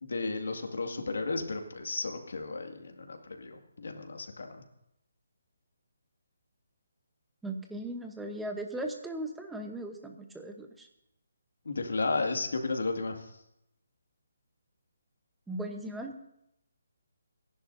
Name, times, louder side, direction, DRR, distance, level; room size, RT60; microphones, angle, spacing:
voice 1, 0.0-4.6 11.7-13.2, left 3 dB, 80° left, 4 dB, 2.2 m, -33 dB
voice 2, 7.4-10.9 15.5-16.1, right 1 dB, 5° right, 3 dB, 0.9 m, -38 dB
28.5 x 11.0 x 2.7 m, 0.81 s
hypercardioid pair, 170°, 0 cm